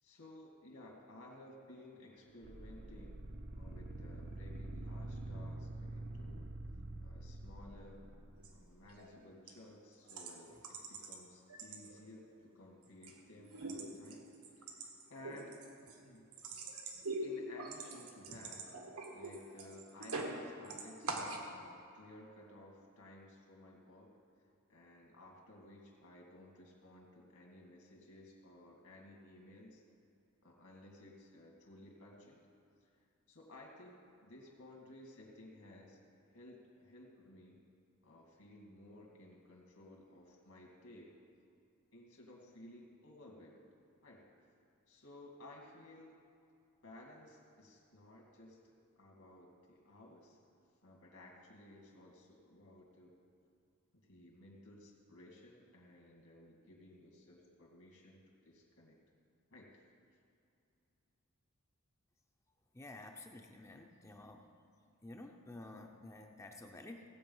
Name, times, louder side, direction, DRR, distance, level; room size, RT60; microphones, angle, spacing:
voice 1, 0.0-3.2 3.5-6.5 7.0-8.0 8.5-14.3 14.6-16.3 17.2-18.7 19.1-24.1 24.7-29.8 30.4-32.4 32.8-33.0 33.3-36.0 36.3-37.6 38.0-41.2 41.9-43.6 44.0-44.2 44.9-46.1 46.8-50.4 50.8-53.1 53.9-59.0 59.5-59.8, left 1 dB, 70° left, -2 dB, 2.1 m, -57 dB
sound 1, 2.4-8.6, right 2 dB, 45° right, 0.7 m, -46 dB
sound 2, 8.4-8.5 8.9-9.2 9.5-9.6 10.1-11.2 11.5-12.3 12.6-13.2 13.4-20.4 20.6-21.5, right 2 dB, 80° right, 1.6 m, -44 dB
voice 2, 62.7-64.4 65.0-67.1, left 2 dB, 15° left, 2 dB, 0.6 m, -51 dB
16.5 x 8.4 x 5.5 m, 2.5 s
head